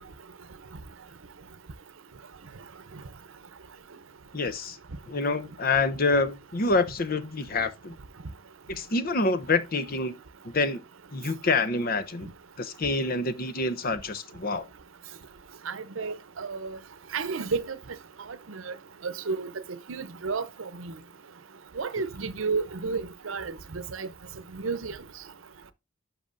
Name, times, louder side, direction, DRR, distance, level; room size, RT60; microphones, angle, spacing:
voice 1, 4.3-4.8 5.1-7.9 8.7-10.2 10.4-10.8 11.1-12.3 12.6-14.7, left 3 dB, 45° left, 0.7 m, -27 dB
voice 2, 15.7-16.8 17.1-17.8 18.5-18.7 19.0-19.5 19.9-20.5 20.8-20.9 21.8-24.1 24.5-25.0, right 4 dB, 80° right, 0.7 m, -31 dB
11.0 x 5.9 x 2.5 m
head